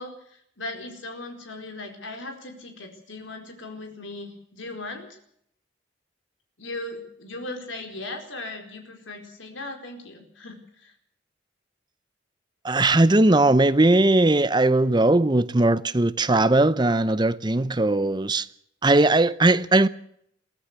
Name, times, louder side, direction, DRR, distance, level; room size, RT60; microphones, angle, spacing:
voice 1, 0.0-5.2 6.6-10.9, left 2 dB, 75° left, 4.6 m, -38 dB
voice 2, 12.6-18.5 18.8-19.9, right 2 dB, 20° right, 0.7 m, -19 dB
22.5 x 15.0 x 8.2 m
head